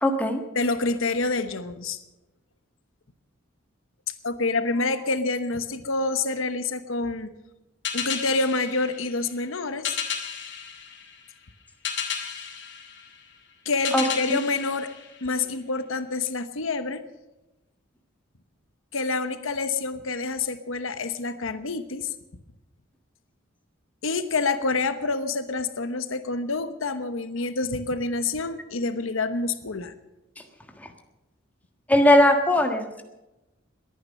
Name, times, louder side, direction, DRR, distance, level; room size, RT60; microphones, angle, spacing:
voice 1, 0.0-0.4 13.9-14.0 14.3-14.4 31.9-32.8, left 1 dB, 10° left, 4 dB, 1.5 m, -18 dB
voice 2, 0.5-2.0 4.2-7.3 7.9-10.0 13.6-14.9 15.2-17.0 18.9-22.1 24.0-29.9, left 3 dB, 80° left, 11 dB, 1.1 m, -27 dB
sound 1, 7.8-15.7, left 7 dB, 60° left, 2.6 m, -34 dB
21.5 x 9.5 x 6.6 m, 0.98 s
head